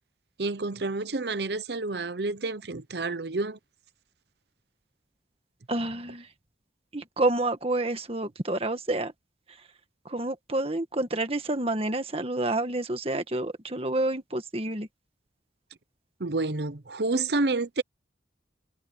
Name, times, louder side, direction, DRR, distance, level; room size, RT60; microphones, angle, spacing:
voice 1, 0.4-3.6 16.2-17.8, right 3 dB, 65° right, 0.9 m, -29 dB
voice 2, 5.7-6.3 6.9-9.1 10.1-14.9, right 2 dB, 30° right, 1.8 m, -29 dB
head